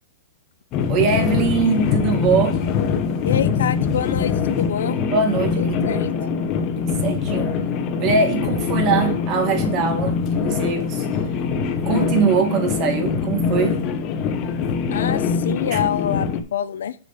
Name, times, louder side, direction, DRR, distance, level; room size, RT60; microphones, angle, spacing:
sound 1, 0.7-16.4, left 6 dB, 30° left, 1.1 m, -23 dB
voice 1, 0.9-2.6 5.1-6.3 6.8-7.6 8.0-11.1 11.8-13.8 15.7-15.8, right 5 dB, 30° right, 1.9 m, -22 dB
voice 2, 3.2-5.0 5.6-6.1 14.9-17.0, left 9 dB, 80° left, 0.9 m, -26 dB
6.5 x 6.3 x 5.2 m
hypercardioid pair, 155°, 0 cm